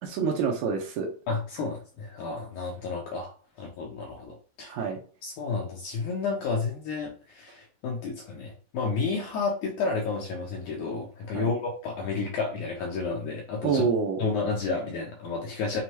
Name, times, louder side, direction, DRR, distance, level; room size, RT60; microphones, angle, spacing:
voice 1, 0.0-1.1 4.6-5.0 11.3-11.5 13.6-14.2, right 5 dB, 90° right, 0 dB, 1.6 m, -27 dB
voice 2, 1.3-3.3 3.6-4.7 5.2-13.9 14.2-15.8, left 4 dB, 80° left, 0 dB, 1.8 m, -31 dB
6.5 x 2.3 x 2.8 m, 0.40 s
omnidirectional pair, 4.4 m